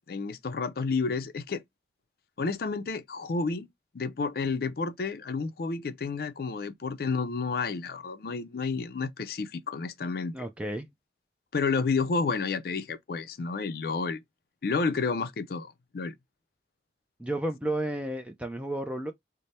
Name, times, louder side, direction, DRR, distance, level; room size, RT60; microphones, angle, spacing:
voice 1, 0.1-1.6 2.4-3.7 3.9-10.3 11.5-14.2 14.6-16.1, left 4 dB, 55° left, 0.4 m, -30 dB
voice 2, 10.3-10.9 17.2-19.1, right 1 dB, 5° right, 0.3 m, -32 dB
3.2 x 2.0 x 4.1 m
head